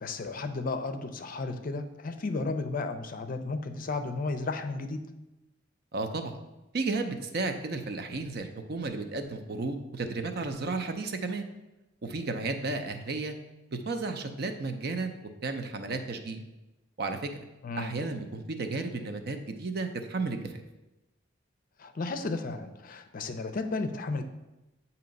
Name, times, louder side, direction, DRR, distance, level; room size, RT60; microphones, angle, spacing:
voice 1, 0.0-5.0 17.6-17.9 21.8-24.2, left 3 dB, 45° left, 8 dB, 0.5 m, -33 dB
voice 2, 5.9-6.3 6.7-11.5 12.0-13.4 13.7-15.1 15.4-16.4 17.0-17.3 17.7-20.6, right 3 dB, 55° right, 6 dB, 0.6 m, -33 dB
7.8 x 2.9 x 5.2 m, 1.0 s
head